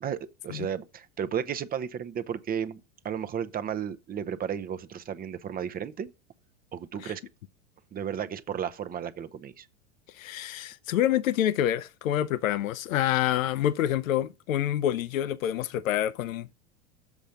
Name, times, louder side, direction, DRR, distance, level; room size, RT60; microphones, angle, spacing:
voice 1, 0.0-6.1 6.7-7.2 7.9-9.7, right 8 dB, 25° right, 0.6 m, -33 dB
voice 2, 10.1-16.6, left 11 dB, 90° left, 0.6 m, -27 dB
7.1 x 5.2 x 5.7 m
hypercardioid pair, 110°, 39 cm